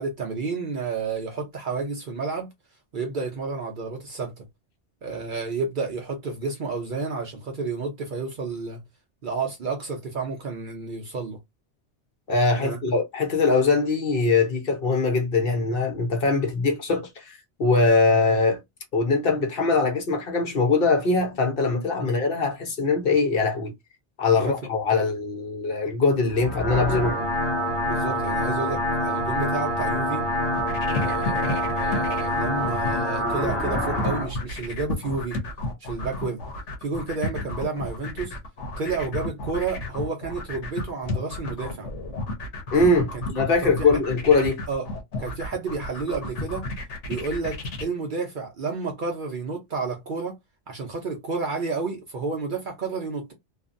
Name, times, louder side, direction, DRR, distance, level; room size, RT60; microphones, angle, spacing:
voice 1, 0.0-2.5 2.9-4.4 5.0-8.8 9.2-11.4 12.6-13.0 24.3-25.1 27.8-30.3 30.9-35.4 35.8-36.4 36.8-38.4 38.8-41.9 43.1-43.2 43.6-44.0 44.7-44.9 45.2-46.7 47.1-50.4 50.7-53.3, right 4 dB, 55° right, 0.6 m, -31 dB
voice 2, 12.3-18.6 18.9-23.7 24.2-27.2 42.7-44.6, left 3 dB, 55° left, 0.9 m, -22 dB
sound 1, 26.3-34.3, equal, 20° left, 1.3 m, -26 dB
sound 2, 30.4-47.8, left 2 dB, 80° left, 1.2 m, -32 dB
2.8 x 2.4 x 2.5 m
omnidirectional pair, 1.2 m